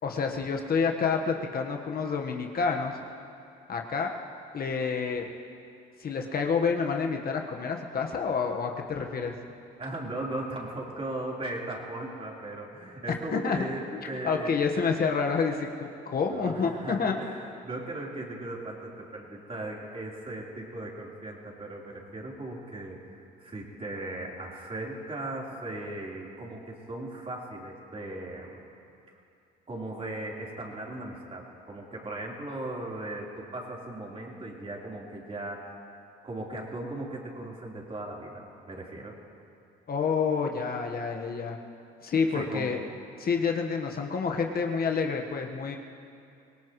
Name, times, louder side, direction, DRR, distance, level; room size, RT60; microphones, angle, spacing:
voice 1, 0.0-3.0 3.7-4.1 4.5-5.3 6.0-9.3 13.3-13.6 13.9-17.2 39.9-41.6 42.0-42.8 43.2-45.8, left 5 dB, 45° left, 2 dB, 1.5 m, -28 dB
voice 2, 9.8-14.6 16.3-28.6 29.7-35.7 36.2-39.2 42.3-42.7, right 2 dB, 30° right, -3 dB, 4.1 m, -38 dB
24.5 x 18.0 x 3.2 m, 2.5 s
supercardioid pair, 75°, 20 cm